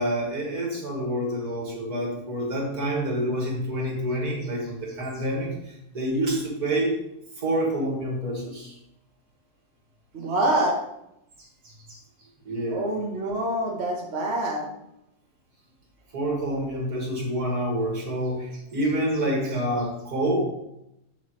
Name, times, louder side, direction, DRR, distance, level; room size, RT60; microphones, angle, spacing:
voice 1, 0.0-7.0 7.4-8.8 11.6-12.0 12.5-12.9 16.1-20.4, right 1 dB, 75° right, -2 dB, 2.6 m, -27 dB
voice 2, 10.1-10.8 12.7-14.7, right 1 dB, 45° right, 0 dB, 1.3 m, -26 dB
7.5 x 7.1 x 3.2 m, 0.85 s
omnidirectional pair, 1.6 m